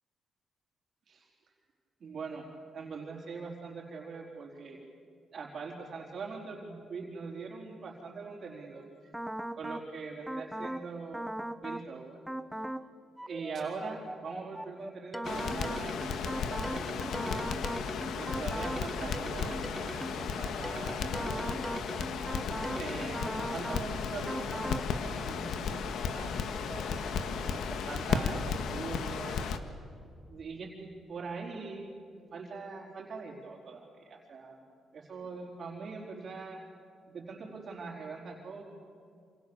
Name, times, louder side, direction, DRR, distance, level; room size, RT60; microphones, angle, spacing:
voice 1, 2.0-2.4 2.7-4.8 5.3-8.8 9.5-11.3 11.6-12.2 13.2-17.2 18.1-21.7 22.7-29.4 30.3-31.9 32.3-34.6 34.9-36.6 37.1-38.6, right 4 dB, 40° right, -2 dB, 4.4 m, -42 dB
sound 1, 9.1-9.9 10.3-10.8 11.1-11.9 12.3-12.8 13.2-20.2 20.6-23.9 24.3-24.8, right 1 dB, 5° right, 0.9 m, -38 dB
Crackle, 15.2-29.6, left 6 dB, 70° left, 1.8 m, -34 dB
29.0 x 27.5 x 7.2 m, 2.5 s
cardioid pair, 155°, 0 cm